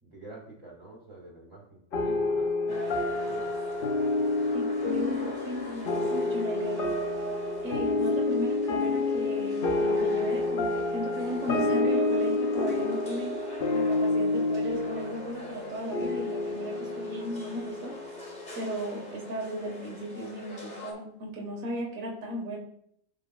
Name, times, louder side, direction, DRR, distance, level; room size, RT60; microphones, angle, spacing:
voice 1, 0.0-3.5, right 1 dB, 25° right, -5 dB, 2.1 m, -47 dB
sound 1, 1.9-18.7, left 2 dB, 50° left, 0.7 m, -29 dB
amb gare guillemins, 2.7-20.9, left 1 dB, 30° left, 1.9 m, -45 dB
voice 2, 4.5-6.9 7.6-13.4 13.7-18.0 18.6-22.6, equal, 65° right, -1 dB, 1.9 m, -36 dB
12.0 x 5.3 x 2.3 m, 0.71 s
omnidirectional pair, 1.5 m